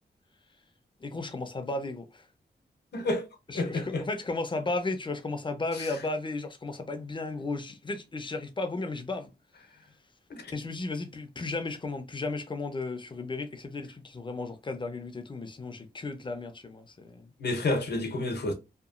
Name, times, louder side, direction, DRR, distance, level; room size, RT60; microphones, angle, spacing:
voice 1, 1.0-2.2 3.5-9.3 10.5-17.3, left 3 dB, 30° left, 0.5 m, -34 dB
voice 2, 2.9-3.3 3.5-4.0 5.7-6.0 10.3-10.5 17.4-18.5, left 2 dB, 75° left, 0.7 m, -30 dB
2.9 x 2.3 x 2.4 m
wide cardioid pair, 85°, 17 cm